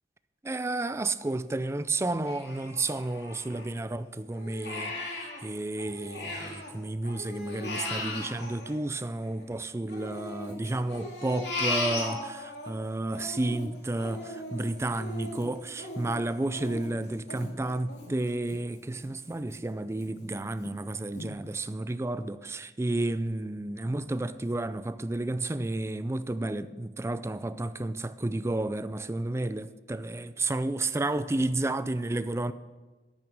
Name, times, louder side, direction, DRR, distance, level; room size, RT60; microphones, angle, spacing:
voice 1, 0.4-32.5, right 2 dB, 15° right, 0.4 m, -31 dB
Crying sobbing, 2.3-3.9 4.3-6.7 7.0-9.4 9.9-12.7 13.1-18.6 19.0-19.1 19.5-20.1 20.6-20.7 21.1-21.3, left 2 dB, 80° left, 2.5 m, -37 dB
10.5 x 8.9 x 6.2 m
head